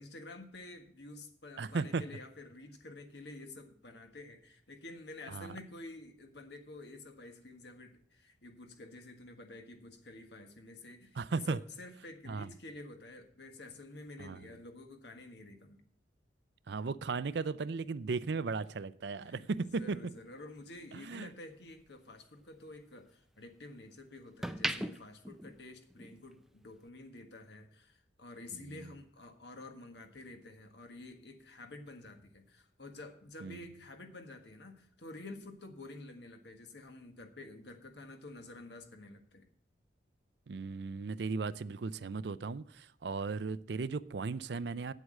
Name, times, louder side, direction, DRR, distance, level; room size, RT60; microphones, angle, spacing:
voice 1, 0.0-15.8 19.2-19.5 19.8-39.5, left 2 dB, 65° left, 1.5 m, -50 dB
voice 2, 1.6-2.0 5.3-5.6 11.2-11.6 12.3-12.5 14.2-14.4 16.7-20.0 20.9-21.3 28.5-28.9 33.4-33.6 40.5-44.9, right 4 dB, 65° right, 0.5 m, -36 dB
sound 1, 19.6-21.9 22.3-23.7 24.2-26.3 26.6-26.9, right 1 dB, ahead, 0.4 m, -41 dB
8.7 x 8.0 x 6.4 m
head